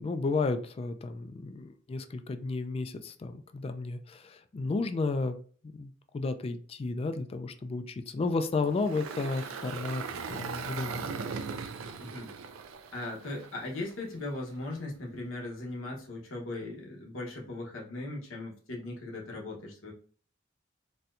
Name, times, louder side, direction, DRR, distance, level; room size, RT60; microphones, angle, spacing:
voice 1, 0.0-5.4 5.7-11.2, left 3 dB, 30° left, 9 dB, 0.3 m, -33 dB
Engine, 8.6-13.9, right 5 dB, 85° right, 0.4 m, -39 dB
voice 2, 12.0-12.3 12.9-19.9, left 2 dB, 80° left, -2 dB, 1.1 m, -38 dB
4.2 x 2.2 x 2.5 m, 0.43 s
head